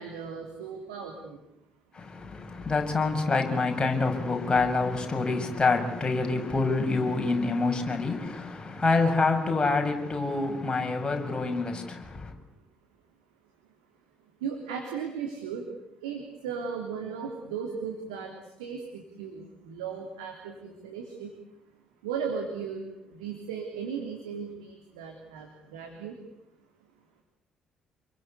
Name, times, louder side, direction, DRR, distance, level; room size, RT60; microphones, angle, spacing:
voice 1, 0.0-1.4 14.4-15.7 16.0-21.3 22.0-26.2, right 6 dB, 75° right, 3.4 m, -36 dB
voice 2, 1.9-12.3, left 3 dB, 25° left, 6.7 m, -27 dB
29.0 x 22.5 x 8.4 m
figure-of-eight pair, 45°, 3 cm